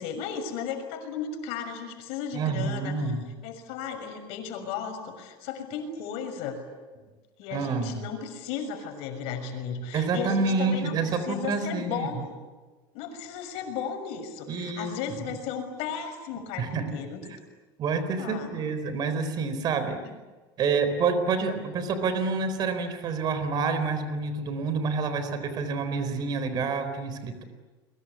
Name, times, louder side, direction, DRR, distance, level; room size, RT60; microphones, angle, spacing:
voice 1, 0.0-3.1 3.4-6.6 7.4-12.3 12.9-17.2 18.2-18.5 21.4-21.5, left 7 dB, 60° left, 6 dB, 6.5 m, -35 dB
voice 2, 2.3-3.2 7.5-8.0 9.9-12.1 14.5-15.2 16.6-16.9 17.2-17.4 17.8-20.0 20.6-27.4, right 4 dB, 35° right, 9 dB, 4.1 m, -28 dB
30.0 x 23.5 x 8.5 m, 1.3 s
supercardioid pair, 145°, 11 cm